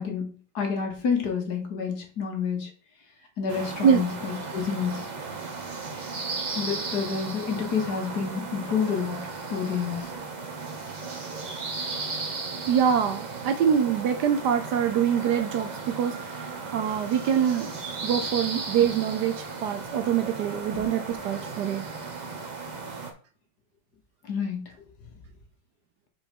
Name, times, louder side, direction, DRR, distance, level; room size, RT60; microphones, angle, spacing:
voice 1, 0.0-2.7 3.4-5.1 6.6-9.2 9.5-10.1 20.7-20.8 24.3-24.6, left 6 dB, 55° left, 3 dB, 1.9 m, -29 dB
sound 1, 3.5-23.1, right 4 dB, 40° right, 0.6 m, -35 dB
voice 2, 12.7-15.7 16.0-16.5 16.7-17.7 18.0-21.8, right 8 dB, 70° right, 8 dB, 1.1 m, -24 dB
5.3 x 4.6 x 5.3 m, 0.40 s
omnidirectional pair, 2.1 m